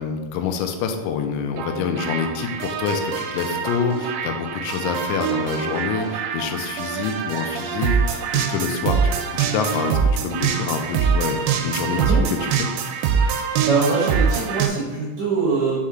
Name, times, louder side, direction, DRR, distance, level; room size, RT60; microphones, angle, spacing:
voice 1, 0.0-12.7, left 6 dB, 90° left, 6 dB, 3.0 m, -27 dB
sound 1, 1.6-14.7, right 6 dB, 85° right, 2.7 m, -24 dB
voice 2, 13.7-15.8, right 4 dB, 65° right, -6 dB, 2.1 m, -22 dB
6.3 x 4.4 x 3.7 m, 1.3 s
omnidirectional pair, 5.3 m